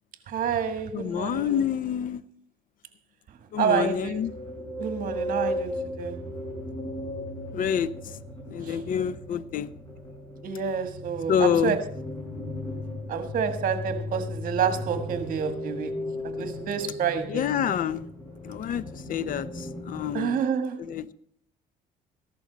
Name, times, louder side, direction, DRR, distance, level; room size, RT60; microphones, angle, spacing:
voice 1, 0.3-1.6 3.6-4.2 4.8-6.2 8.6-8.8 10.4-11.8 13.1-15.9 16.2-17.4 20.1-20.8, right 7 dB, 55° right, 1.6 m, -28 dB
voice 2, 0.9-2.2 3.5-4.3 7.5-8.2 8.5-9.7 11.3-11.8 17.3-18.1 18.4-20.4 20.8-21.1, left 8 dB, 55° left, 0.7 m, -27 dB
sound 1, 4.1-20.1, left 1 dB, 20° left, 5.9 m, -36 dB
14.5 x 11.5 x 4.0 m
cardioid pair, 110°, 17 cm